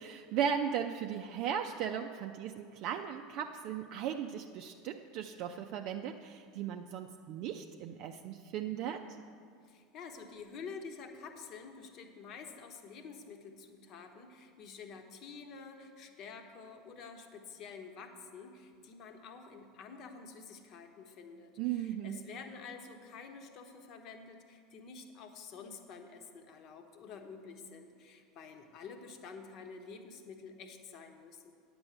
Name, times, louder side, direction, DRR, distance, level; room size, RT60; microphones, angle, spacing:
voice 1, 0.0-9.0 21.6-22.2, right 8 dB, 50° right, 4 dB, 0.5 m, -37 dB
voice 2, 9.6-31.5, left 5 dB, 45° left, 5 dB, 1.1 m, -49 dB
9.8 x 7.0 x 7.5 m, 2.4 s
figure-of-eight pair, 75°, 0 cm